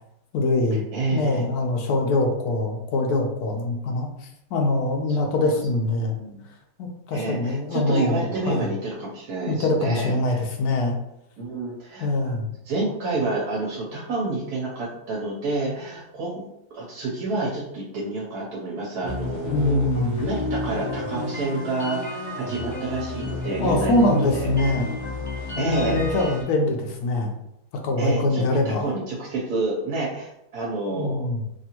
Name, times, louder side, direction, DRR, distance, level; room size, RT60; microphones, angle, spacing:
voice 1, 0.3-4.1 4.5-6.2 6.8-8.7 9.5-11.0 12.0-12.5 19.4-20.2 23.6-25.0 25.5-27.4 27.8-28.9 31.0-31.4, left 2 dB, 85° left, 3 dB, 1.2 m, -23 dB
voice 2, 0.9-1.6 6.0-6.4 7.1-10.4 11.4-12.3 12.6-16.4 16.7-23.9 24.3-24.5 25.5-26.4 28.0-31.3, right 3 dB, 85° right, -5 dB, 1.3 m, -29 dB
sound 1, 19.0-26.4, left 3 dB, 15° left, 0.9 m, -31 dB
3.4 x 2.4 x 2.8 m, 0.82 s
omnidirectional pair, 1.6 m